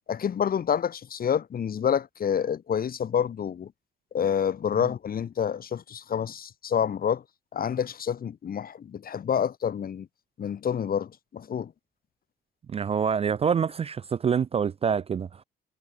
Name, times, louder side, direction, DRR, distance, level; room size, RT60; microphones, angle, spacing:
voice 1, 0.1-3.7 4.1-7.2 7.5-10.1 10.4-11.7, left 8 dB, 50° left, 1.3 m, -28 dB
voice 2, 12.7-15.4, right 7 dB, 30° right, 0.3 m, -26 dB
cardioid pair, 90°, 20 cm